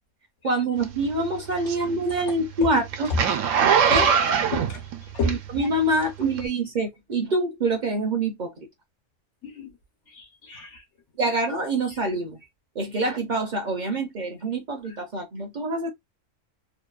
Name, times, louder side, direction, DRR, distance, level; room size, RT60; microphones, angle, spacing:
voice 1, 0.4-3.1 3.8-4.1 5.2-8.7 11.2-12.4 12.7-15.9, right 2 dB, 50° right, 0.5 m, -26 dB
Zipper (clothing), 0.8-5.8 6.3-6.4, right 7 dB, 80° right, 0.9 m, -22 dB
voice 2, 3.6-4.0 4.5-4.8 5.1-5.3 9.4-9.7 10.1-10.8, left 2 dB, 70° left, 1.2 m, -31 dB
2.8 x 2.1 x 2.3 m
omnidirectional pair, 1.3 m